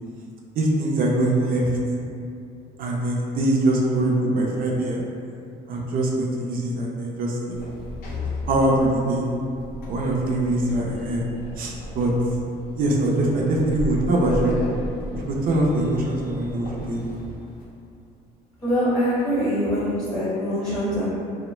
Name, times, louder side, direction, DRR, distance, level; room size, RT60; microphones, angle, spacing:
voice 1, 0.6-1.7 2.8-5.0 5.7-7.7 8.5-9.2 9.9-11.3 11.6-12.1 12.7-14.6 15.2-17.0, right 1 dB, 55° right, -2 dB, 0.5 m, -23 dB
Sliding door, 7.5-17.7, equal, 65° left, 0.5 m, -35 dB
voice 2, 18.6-21.1, equal, 25° left, -10 dB, 0.7 m, -23 dB
2.1 x 2.1 x 3.1 m, 2.5 s
cardioid pair, 110°, 17 cm